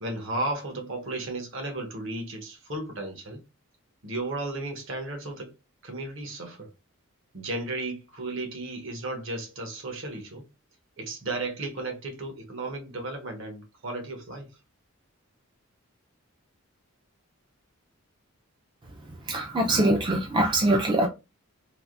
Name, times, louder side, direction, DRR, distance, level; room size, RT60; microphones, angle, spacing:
voice 1, 0.0-3.4 4.0-5.5 5.8-6.7 7.3-10.5 11.0-14.5, right 2 dB, 60° right, 0.9 m, -34 dB
voice 2, 19.3-21.1, right 1 dB, 20° right, 0.4 m, -23 dB
3.3 x 2.6 x 2.4 m
head